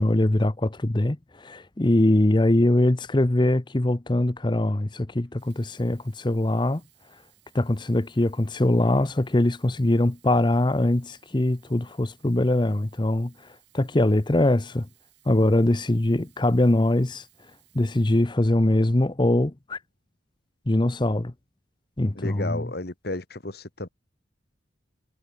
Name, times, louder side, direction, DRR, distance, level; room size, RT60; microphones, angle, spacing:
voice 1, 0.0-6.8 7.5-13.3 13.7-14.9 15.3-17.2 17.7-19.8 20.7-21.3 22.0-22.7, left 1 dB, 25° left, 0.7 m, -22 dB
Sink (filling or washing), 5.2-19.0 19.8-19.9, right 16 dB, 60° right, 7.4 m, -62 dB
voice 2, 22.1-23.9, left 2 dB, 55° left, 1.7 m, -33 dB
head